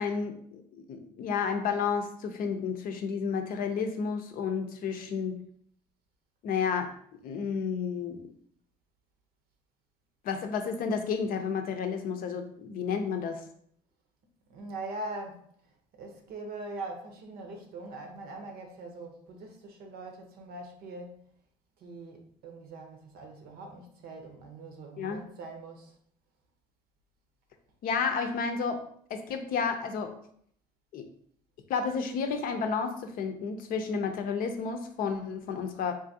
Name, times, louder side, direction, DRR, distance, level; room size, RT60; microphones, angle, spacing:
voice 1, 0.0-5.4 6.4-6.9 7.2-8.2 10.2-13.4 25.0-25.2 27.8-28.8 29.1-30.1 30.9-31.1 31.7-35.9, left 5 dB, 65° left, 0.6 m, -31 dB
voice 2, 14.5-15.4 15.9-21.2 21.8-25.9, right 2 dB, 70° right, 0.8 m, -42 dB
3.7 x 2.5 x 2.7 m
supercardioid pair, 70°, 16 cm